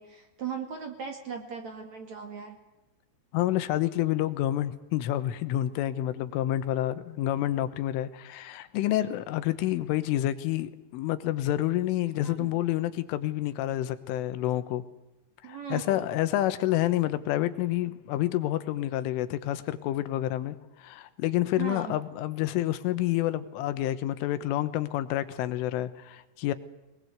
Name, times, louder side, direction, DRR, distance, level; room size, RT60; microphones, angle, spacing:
voice 1, 0.0-2.6 12.2-12.6 15.4-16.1 21.6-22.0, right 7 dB, 45° right, 4 dB, 2.9 m, -38 dB
voice 2, 3.3-14.8 15.4-26.5, left 14 dB, 90° left, 12 dB, 3.6 m, -28 dB
24.0 x 20.5 x 8.1 m, 0.99 s
omnidirectional pair, 5.6 m